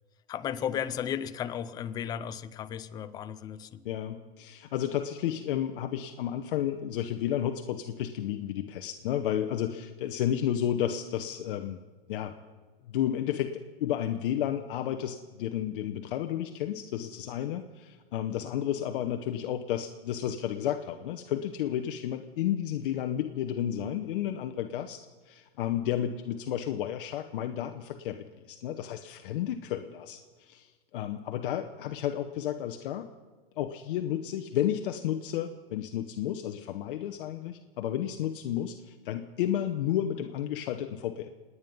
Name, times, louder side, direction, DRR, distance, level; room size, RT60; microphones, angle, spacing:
voice 1, 0.3-3.8, left 9 dB, 15° left, 0.4 m, -34 dB
voice 2, 3.8-11.8 12.1-12.4 12.9-25.0 25.3-33.1 33.6-41.3, left 10 dB, 55° left, 1.0 m, -32 dB
27.5 x 9.7 x 5.5 m
hypercardioid pair, 145°, 31 cm